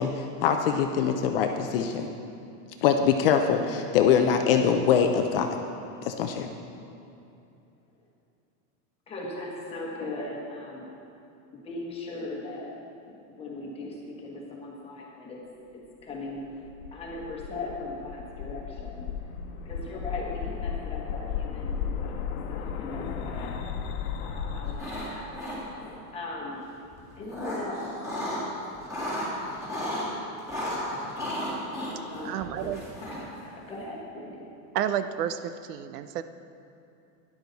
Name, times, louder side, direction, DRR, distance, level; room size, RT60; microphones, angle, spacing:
voice 1, 0.0-2.1 2.8-5.5 6.0-6.5, left 7 dB, 40° left, 5 dB, 0.4 m, -23 dB
voice 2, 9.1-10.9 11.5-12.7 13.0-15.5 15.7-16.4 16.9-19.1 19.6-23.6 24.2-25.3 26.1-26.6 27.2-27.9 31.9-34.5, left 2 dB, 15° left, -3 dB, 1.3 m, -39 dB
sound 1, 16.4-24.7, left 7 dB, 75° left, 1.1 m, -34 dB
sound 2, 24.7-25.1 25.3-26.0 26.9-28.4 28.7-30.0 30.5-33.4, left 1 dB, 5° right, 2.1 m, -34 dB
voice 3, 32.2-32.8 34.7-36.2, right 10 dB, 90° right, 11 dB, 0.7 m, -30 dB
12.5 x 10.5 x 4.0 m, 2.7 s
supercardioid pair, 175°, 45 cm